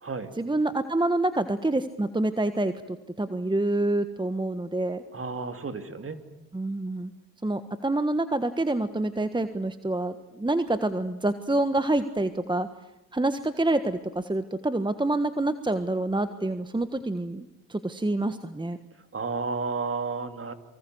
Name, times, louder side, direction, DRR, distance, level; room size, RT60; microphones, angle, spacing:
voice 1, 0.4-5.0 6.5-7.1 7.4-12.7 13.1-18.8, right 2 dB, 15° right, 11 dB, 1.4 m, -27 dB
voice 2, 5.1-6.2 19.1-20.5, right 4 dB, 35° right, 9 dB, 3.0 m, -32 dB
28.0 x 24.5 x 7.9 m, 0.94 s
supercardioid pair, 55°, 36 cm